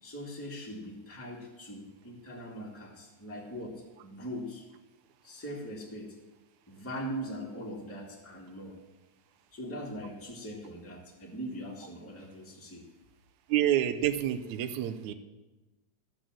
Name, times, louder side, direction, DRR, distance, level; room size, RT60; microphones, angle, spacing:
voice 1, 0.0-4.6 5.2-6.2 6.7-8.8 9.5-12.9, equal, 5° left, -3 dB, 1.5 m, -41 dB
voice 2, 13.5-15.1, right 11 dB, 75° right, 8 dB, 2.0 m, -28 dB
13.5 x 6.3 x 7.5 m, 1.1 s
omnidirectional pair, 3.6 m